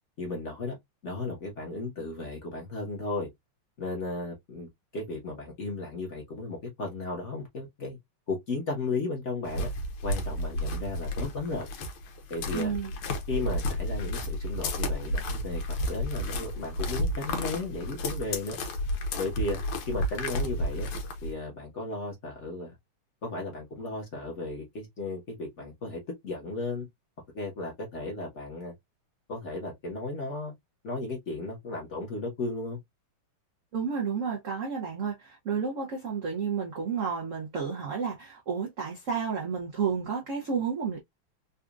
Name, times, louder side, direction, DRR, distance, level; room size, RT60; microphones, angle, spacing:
voice 1, 0.2-0.8 1.0-3.3 3.8-4.7 4.9-8.0 8.3-9.7 10.0-11.7 12.3-12.7 13.3-15.6 15.9-18.6 19.2-19.6 19.9-20.9 21.2-22.8 23.2-26.9 27.3-28.7 29.3-30.5 30.8-32.8, left 3 dB, 40° left, 1.2 m, -35 dB
sound 1, 9.5-21.3, left 1 dB, 80° left, 1.7 m, -32 dB
voice 2, 12.5-12.9 33.7-41.0, right 6 dB, 80° right, 0.7 m, -31 dB
4.1 x 2.4 x 2.3 m
omnidirectional pair, 2.4 m